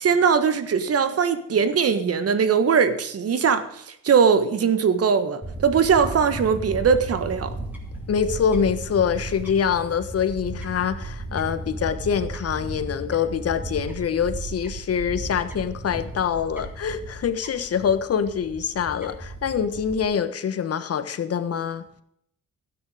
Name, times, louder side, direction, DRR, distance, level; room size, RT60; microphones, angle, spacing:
voice 1, 0.0-7.5, right 6 dB, 50° right, 1.5 m, -20 dB
Fowl / Bird, 5.4-20.0, right 2 dB, 5° right, 3.6 m, -35 dB
voice 2, 8.1-21.8, left 7 dB, 50° left, 1.3 m, -25 dB
13.0 x 9.3 x 5.0 m
cardioid pair, 90°, 30 cm